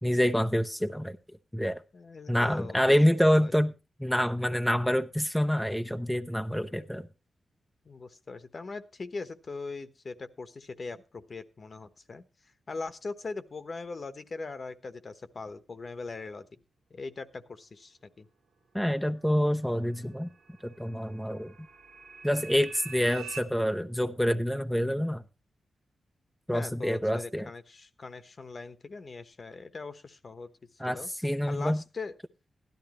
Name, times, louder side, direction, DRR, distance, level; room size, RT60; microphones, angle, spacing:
voice 1, 0.0-1.2 1.5-1.8 2.3-3.7 4.0-7.1 18.7-20.3 20.6-21.5 22.2-25.2 26.5-27.5 30.8-31.8, equal, ahead, 0.6 m, -27 dB
voice 2, 1.9-3.0 3.3-3.5 7.8-12.2 12.7-16.5 16.9-18.3 26.5-30.5 30.8-31.1 31.5-32.1, left 3 dB, 50° left, 1.1 m, -40 dB
sound 1, 19.2-23.4, right 6 dB, 80° right, 1.6 m, -47 dB
16.0 x 12.0 x 3.0 m
cardioid pair, 70°, 0 cm